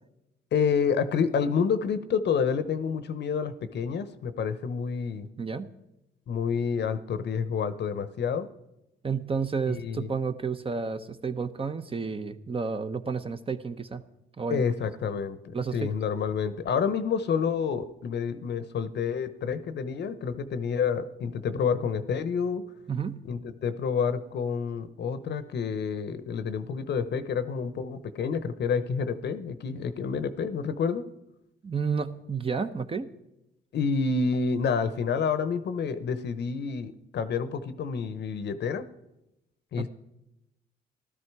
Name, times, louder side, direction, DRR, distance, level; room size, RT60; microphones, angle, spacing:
voice 1, 0.5-5.3 6.3-8.5 9.7-10.1 14.5-22.6 23.2-31.0 33.7-38.8 39.7-39.9, left 6 dB, 60° left, 12 dB, 0.9 m, -29 dB
voice 2, 5.4-5.7 9.0-14.0 14.4-14.6 15.5-15.9 22.9-23.3 31.6-33.1 39.8-39.9, right 5 dB, 30° right, 9 dB, 0.8 m, -31 dB
15.0 x 12.5 x 4.7 m, 0.89 s
cardioid pair, 90°, 20 cm